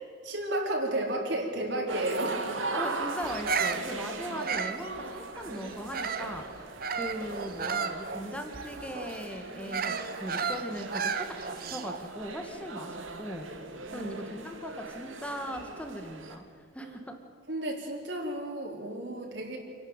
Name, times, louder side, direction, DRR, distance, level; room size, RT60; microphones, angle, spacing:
voice 1, 0.2-2.6 4.2-4.4 13.9-14.1 16.8-16.9 17.5-19.6, right 1 dB, 65° right, -1 dB, 3.9 m, -33 dB
sound 1, 1.9-16.3, right 3 dB, 85° right, 2.5 m, -39 dB
voice 2, 2.7-6.5 6.9-13.5 13.9-16.4 16.7-17.2, equal, 5° left, 5 dB, 2.0 m, -39 dB
Bird vocalization bird call bird song, 3.3-6.4 6.8-12.1, right 5 dB, 45° right, 1.2 m, -34 dB
27.5 x 12.0 x 9.2 m, 2.3 s
head